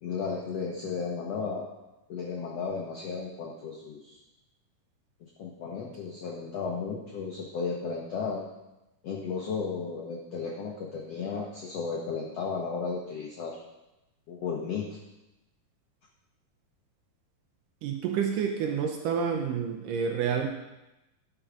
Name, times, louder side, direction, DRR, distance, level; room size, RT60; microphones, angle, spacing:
voice 1, 0.0-1.7 2.1-4.2 5.2-8.4 9.0-13.5 14.3-15.0, left 5 dB, 90° left, -1 dB, 1.3 m, -34 dB
voice 2, 17.8-20.5, right 7 dB, 75° right, 3 dB, 2.1 m, -29 dB
11.5 x 6.2 x 5.0 m, 0.96 s
omnidirectional pair, 4.4 m